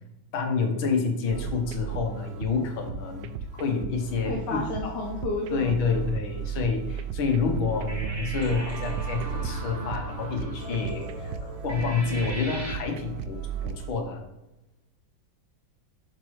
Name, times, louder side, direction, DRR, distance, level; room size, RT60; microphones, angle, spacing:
voice 1, 0.3-4.9 5.5-14.2, left 5 dB, 75° left, 4 dB, 1.9 m, -28 dB
sound 1, 1.3-13.9, right 7 dB, 75° right, 1.0 m, -35 dB
voice 2, 4.2-6.0, left 2 dB, 60° left, -3 dB, 1.7 m, -31 dB
sound 2, 7.6-12.7, right 1 dB, 40° right, 1.5 m, -37 dB
7.4 x 6.6 x 3.2 m, 0.97 s
omnidirectional pair, 2.3 m